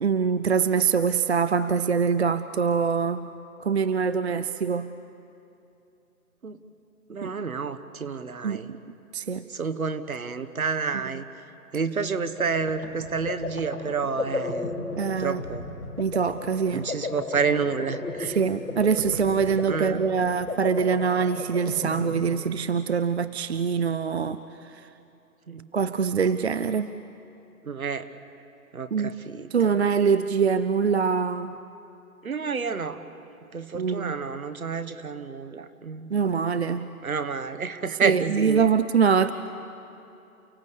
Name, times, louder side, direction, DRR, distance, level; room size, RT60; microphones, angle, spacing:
voice 1, 0.0-3.3 3.6-4.9 7.2-7.3 8.4-8.6 9.1-9.5 15.0-15.4 16.0-16.9 18.4-24.4 25.7-26.9 28.9-29.1 29.5-31.5 33.7-34.1 36.1-36.9 38.0-39.3, right 6 dB, 50° right, 13 dB, 0.5 m, -24 dB
voice 2, 7.1-8.7 9.5-11.2 11.7-14.7 15.2-15.7 16.7-18.4 19.7-20.0 25.5-25.7 27.6-28.1 28.7-29.7 32.2-33.0 33.5-36.1 37.0-38.7, right 5 dB, 70° right, 9 dB, 1.4 m, -29 dB
sound 1, 12.1-22.9, left 3 dB, 80° left, 4.4 m, -35 dB
29.5 x 16.0 x 8.3 m, 2.8 s
figure-of-eight pair, 145°, 44 cm